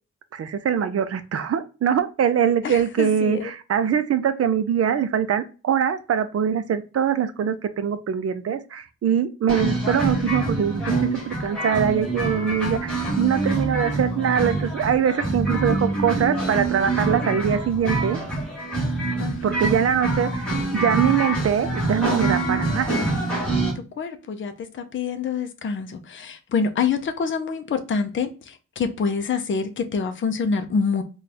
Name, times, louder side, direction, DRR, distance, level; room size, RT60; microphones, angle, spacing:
voice 1, 0.3-18.2 19.4-22.9, right 8 dB, 50° right, 0.4 m, -23 dB
voice 2, 2.6-3.5 19.2-19.7 23.6-23.7 24.0-31.0, left 5 dB, 40° left, 0.5 m, -26 dB
sound 1, 9.5-23.7, right 2 dB, 5° left, 1.4 m, -25 dB
4.1 x 2.3 x 3.3 m
wide cardioid pair, 180°, 31 cm